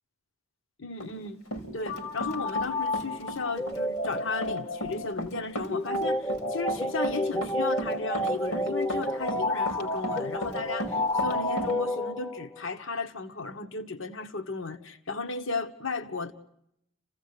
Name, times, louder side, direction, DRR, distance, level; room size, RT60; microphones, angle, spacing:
voice 1, 0.8-1.4 1.7-16.3, left 3 dB, 60° left, 8 dB, 1.2 m, -35 dB
Run, 1.0-2.7 2.9-11.7, equal, 90° left, 4.6 m, -36 dB
sound 1, 1.9-12.6, left 1 dB, 15° left, 0.9 m, -30 dB
28.0 x 16.5 x 9.6 m, 0.78 s
head